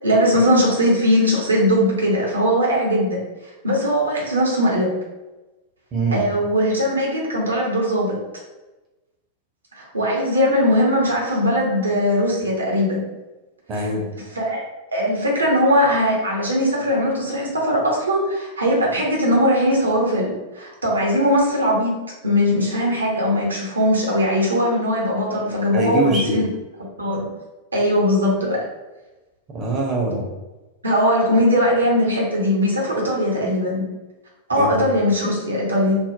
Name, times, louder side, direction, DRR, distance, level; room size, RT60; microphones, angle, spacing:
voice 1, 0.0-3.2 3.6-4.9 6.1-8.1 9.7-13.0 14.4-14.6 14.9-22.0 22.2-26.5 27.0-27.3 27.7-28.6 30.8-33.8 34.5-36.0, equal, 80° right, -3 dB, 0.7 m, -20 dB
voice 2, 5.9-6.2 13.7-14.0 25.7-26.4 29.5-30.3 34.5-34.9, right 2 dB, 30° right, -1 dB, 0.7 m, -23 dB
3.2 x 2.0 x 2.5 m, 1.1 s
figure-of-eight pair, 90°, 0 cm